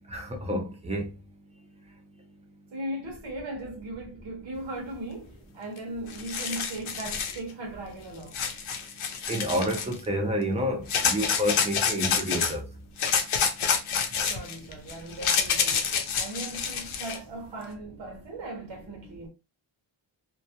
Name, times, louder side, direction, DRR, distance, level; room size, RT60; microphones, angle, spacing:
voice 1, 0.1-1.1 9.3-12.6, equal, 15° right, 0.4 m, -29 dB
voice 2, 2.7-8.4 14.2-19.3, right 1 dB, 60° right, 0.7 m, -38 dB
sound 1, 5.8-5.9 6.1-7.4 8.3-10.0 10.9-12.5 13.0-17.2, left 6 dB, 75° left, 0.6 m, -27 dB
2.2 x 2.1 x 2.7 m
wide cardioid pair, 165°, 50 cm